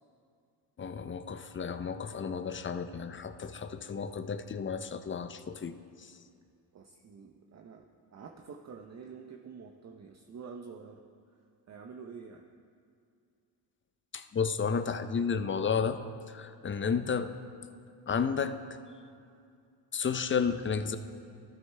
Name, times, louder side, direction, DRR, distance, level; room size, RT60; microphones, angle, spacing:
voice 1, 0.8-6.2 14.1-16.0 16.3-17.3 18.1-18.5 19.9-21.0, left 6 dB, 30° left, 10 dB, 0.5 m, -32 dB
voice 2, 6.7-11.0 11.7-12.4, right 5 dB, 35° right, 3 dB, 0.6 m, -48 dB
12.5 x 7.7 x 3.3 m, 2.4 s
cardioid pair, 75°, 44 cm